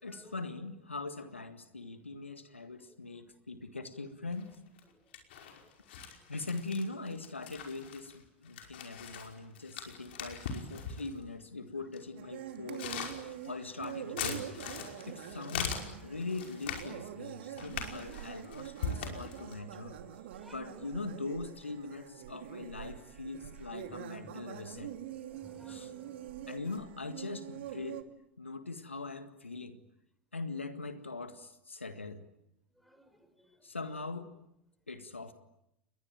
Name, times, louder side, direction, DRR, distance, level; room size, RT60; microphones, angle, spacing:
voice 1, 0.0-4.6 6.3-14.7 15.1-20.0 20.5-24.9 25.7-25.9 26.5-28.0 28.4-29.8 30.3-32.2 33.6-34.3 34.9-35.3, left 3 dB, 90° left, 10 dB, 1.8 m, -41 dB
sound 1, 4.3-4.8 5.1-11.2 11.9-12.0 12.5-16.9 17.5-19.5, left 6 dB, 65° left, 5.3 m, -41 dB
sound 2, 12.2-28.0, right 11 dB, 65° right, 2.6 m, -45 dB
voice 2, 25.3-26.5 32.8-33.1, left 1 dB, ahead, 8 dB, 6.4 m, -57 dB
29.5 x 22.0 x 9.1 m, 0.83 s
figure-of-eight pair, 90°, 6 cm